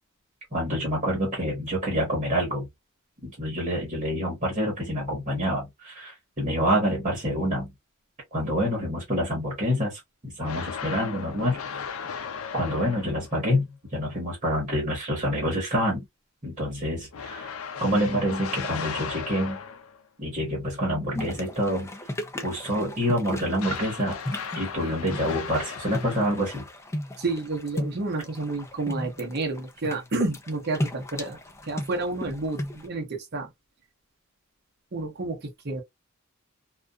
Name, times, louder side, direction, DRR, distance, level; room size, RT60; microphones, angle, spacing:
voice 1, 0.5-2.7 3.2-7.7 8.3-11.8 12.5-16.0 16.4-17.5 17.8-19.6 20.2-21.9 22.4-24.2 24.5-26.7, equal, 30° right, 1.1 m, -27 dB
sound 1, 10.4-13.4 17.1-20.0 23.6-26.7, left 6 dB, 80° left, 0.5 m, -36 dB
sound 2, 21.1-32.9, left 1 dB, 15° left, 0.4 m, -35 dB
voice 2, 27.2-33.5 34.9-35.8, right 2 dB, 50° right, 0.8 m, -30 dB
2.5 x 2.3 x 2.2 m
head